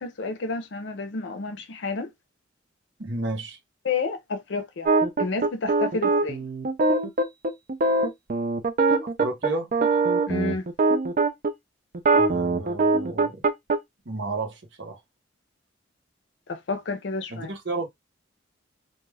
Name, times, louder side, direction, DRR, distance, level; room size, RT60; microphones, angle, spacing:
voice 1, 0.0-2.1 3.8-4.9 5.2-6.5 10.3-10.7 16.5-17.5, left 4 dB, 65° left, 0.5 m, -30 dB
voice 2, 3.0-3.6 9.0-9.7 12.1-13.4 14.0-15.0 17.3-17.9, right 2 dB, 70° right, 1.0 m, -32 dB
sound 1, 4.9-11.5 11.9-13.8, right 3 dB, 45° right, 0.4 m, -22 dB
2.5 x 2.3 x 3.2 m
head